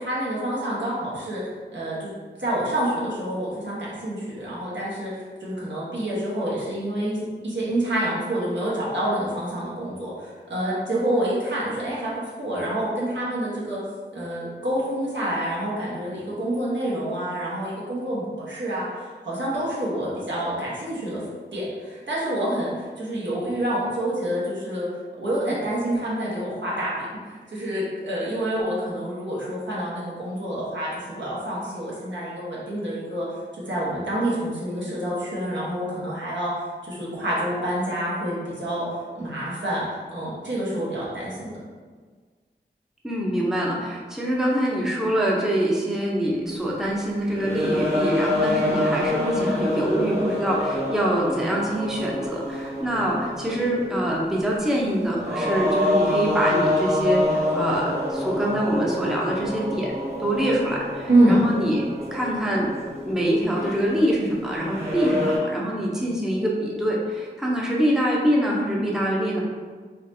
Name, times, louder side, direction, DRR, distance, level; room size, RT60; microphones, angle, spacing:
voice 1, 0.0-1.4 1.7-2.1 2.4-5.1 5.4-7.2 7.4-12.1 12.4-13.8 14.1-21.2 21.5-24.9 25.2-26.9 27.2-33.3 33.7-38.9 39.2-41.5 61.1-61.4, right 1 dB, 85° right, -7 dB, 1.2 m, -27 dB
voice 2, 43.0-59.9 60.2-61.8 62.1-62.7 63.1-69.4, right 1 dB, 5° right, -4 dB, 0.6 m, -24 dB
sound 1, 46.5-46.6 47.1-54.3 55.0-65.4, left 1 dB, 35° right, 1.1 m, -27 dB
4.0 x 3.0 x 2.7 m, 1.5 s
wide cardioid pair, 85°, 19 cm